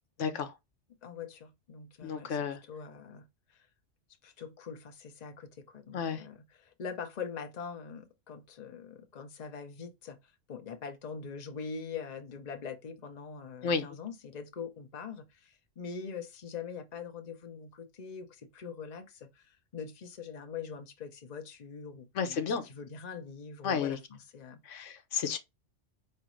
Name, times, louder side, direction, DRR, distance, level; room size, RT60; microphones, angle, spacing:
voice 1, 0.2-0.5 2.0-2.6 5.9-6.2 13.6-13.8 22.2-22.6 23.6-24.0 24.7-25.4, left 6 dB, 90° left, 1.2 m, -31 dB
voice 2, 1.0-3.2 3.5-3.7 4.2-10.2 10.5-24.6, left 6 dB, 40° left, 0.8 m, -43 dB
5.0 x 3.2 x 3.0 m
omnidirectional pair, 1.2 m